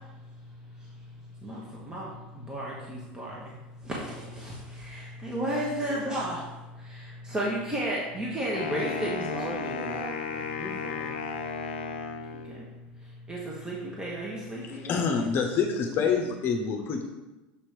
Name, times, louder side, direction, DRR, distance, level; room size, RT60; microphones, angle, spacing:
voice 1, 0.0-9.6 11.3-15.0, right 1 dB, 15° right, -5 dB, 1.3 m, -35 dB
Wind instrument woodwind instrument, 8.5-12.8, left 5 dB, 85° left, 0.5 m, -34 dB
voice 2, 8.7-11.2, right 3 dB, 35° right, 1 dB, 0.8 m, -39 dB
voice 3, 14.8-17.0, left 5 dB, 45° left, 2 dB, 0.8 m, -26 dB
6.9 x 2.9 x 5.1 m, 1.1 s
hypercardioid pair, 100°, 5 cm